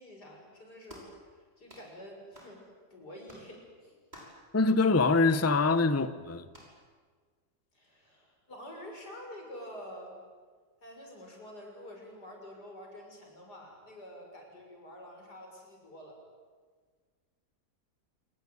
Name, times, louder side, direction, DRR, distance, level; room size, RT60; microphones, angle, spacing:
voice 1, 0.0-2.6 2.9-4.0 7.7-10.2 10.8-16.2, equal, 85° left, 7.1 m, -48 dB
sound 1, 0.9-1.2 1.7-1.9 2.3-2.6 3.3-3.5 4.1-4.4 5.3-5.5 6.5-6.8, equal, 25° right, 6.6 m, -51 dB
voice 2, 4.5-6.4, left 3 dB, 15° left, 0.6 m, -24 dB
28.0 x 20.0 x 9.5 m
omnidirectional pair, 1.7 m